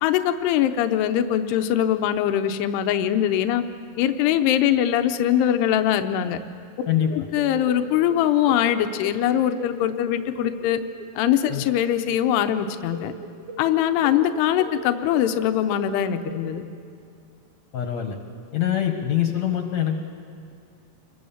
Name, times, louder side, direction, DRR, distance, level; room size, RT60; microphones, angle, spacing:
voice 1, 0.0-3.6 4.0-6.4 7.1-10.8 11.2-13.1 13.6-16.6, left 11 dB, 85° left, 8 dB, 2.9 m, -22 dB
sound 1, 6.8-16.6, right 3 dB, 65° right, 4.5 m, -39 dB
voice 2, 6.9-7.3 11.5-11.6 17.7-18.2 18.5-20.0, left 10 dB, 60° left, 4 dB, 2.1 m, -24 dB
27.0 x 23.0 x 7.2 m, 2.4 s
omnidirectional pair, 4.7 m